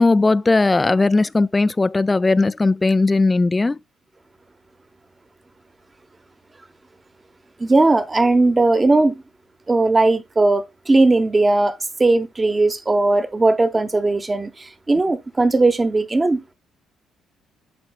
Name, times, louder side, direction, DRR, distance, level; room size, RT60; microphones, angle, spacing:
voice 1, 0.0-3.8, left 3 dB, 20° left, 0.3 m, -17 dB
voice 2, 7.6-9.2 9.7-16.5, right 2 dB, 25° right, 1.0 m, -18 dB
11.0 x 4.3 x 2.3 m
supercardioid pair, 70°, 0 cm